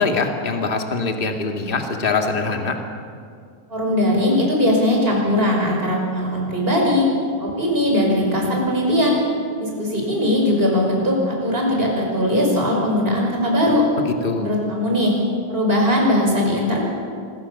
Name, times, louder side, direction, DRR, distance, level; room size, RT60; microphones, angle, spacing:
voice 1, 0.0-2.8 14.2-14.5, left 4 dB, 20° left, 3 dB, 1.6 m, -23 dB
voice 2, 3.7-7.1 7.4-9.2 9.6-13.8 14.4-15.1 15.5-16.8, left 1 dB, 15° right, -1 dB, 5.7 m, -19 dB
26.0 x 22.0 x 7.1 m, 2.3 s
omnidirectional pair, 3.7 m